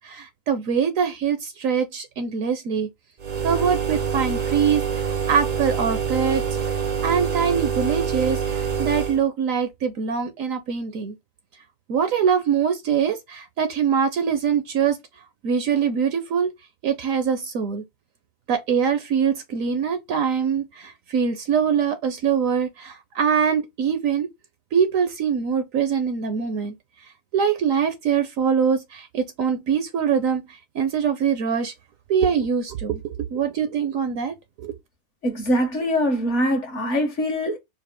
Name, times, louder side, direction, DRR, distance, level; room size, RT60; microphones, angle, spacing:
voice 1, 0.0-2.9 3.4-6.4 7.0-11.1 11.9-15.0 15.4-16.5 16.8-17.8 18.5-24.3 24.7-26.7 27.3-30.4 30.7-31.7 32.1-34.3 34.6-34.7, right 7 dB, 70° right, 1.0 m, -23 dB
sound 1, 3.2-9.2, right 7 dB, 50° right, 0.4 m, -26 dB
voice 2, 35.2-37.6, equal, 55° left, 1.2 m, -23 dB
4.7 x 2.0 x 3.4 m
omnidirectional pair, 1.6 m